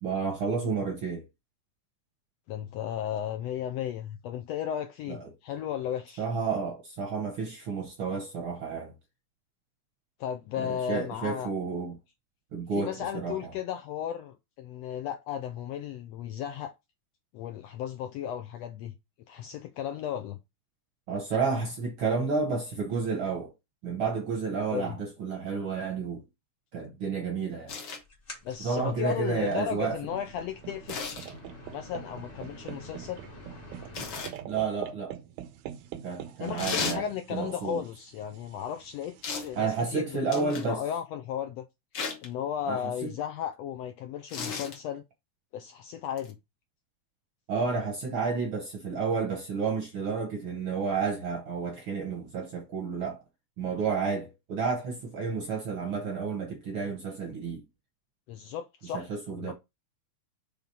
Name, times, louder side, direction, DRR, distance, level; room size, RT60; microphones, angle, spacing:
voice 1, 0.0-1.2 5.1-5.2 6.2-8.9 10.6-12.0 12.5-13.5 21.1-23.5 23.8-26.2 26.7-27.7 28.6-30.0 34.4-35.2 36.0-37.8 39.5-40.8 42.7-43.1 47.5-53.2 53.6-57.6 58.8-59.5, right 5 dB, 60° right, 1.4 m, -31 dB
voice 2, 2.5-6.3 10.2-11.5 12.7-16.7 17.3-18.9 19.3-20.4 24.7-25.0 28.4-31.0 31.7-33.2 36.4-39.2 39.4-41.7 42.2-45.0 45.5-46.4 58.3-59.5, left 9 dB, 80° left, 1.5 m, -35 dB
sound 1, 27.7-28.0 30.9-31.3 33.9-34.4 36.6-37.0 39.2-39.5 40.3-40.7 41.9-42.3 44.3-44.8 46.2-46.3, left 5 dB, 50° left, 1.7 m, -34 dB
sound 2, 28.0-34.3, left 1 dB, 25° left, 1.2 m, -49 dB
sound 3, 29.4-39.9, right 11 dB, 80° right, 1.9 m, -45 dB
5.9 x 3.5 x 5.4 m
omnidirectional pair, 3.5 m